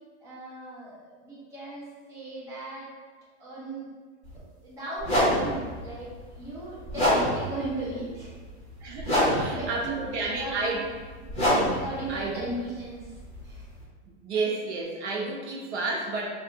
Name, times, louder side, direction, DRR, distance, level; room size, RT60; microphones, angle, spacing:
voice 1, 0.2-2.9 3.4-3.9 4.6-8.3 9.2-10.6 11.7-13.1 13.4-13.6, right 1 dB, 10° right, -10 dB, 0.6 m, -37 dB
sound 1, 4.2-4.4 5.0-13.8, equal, 15° left, 1.2 m, -28 dB
voice 2, 8.8-10.8 12.1-12.5 14.2-16.3, right 3 dB, 70° right, -1 dB, 0.8 m, -31 dB
2.7 x 2.4 x 3.8 m, 1.5 s
supercardioid pair, 170°, 35 cm